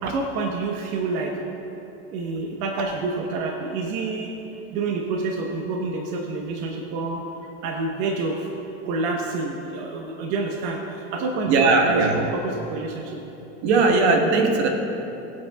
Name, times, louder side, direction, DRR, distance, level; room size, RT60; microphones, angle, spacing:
voice 1, 0.0-1.4 2.1-4.3 4.7-7.2 7.6-8.5 8.8-13.2, right 3 dB, 55° right, 1 dB, 1.2 m, -28 dB
voice 2, 11.5-12.2 13.6-14.7, right 3 dB, 75° right, 2 dB, 1.5 m, -19 dB
21.5 x 8.6 x 2.4 m, 3.0 s
supercardioid pair, 135°, 33 cm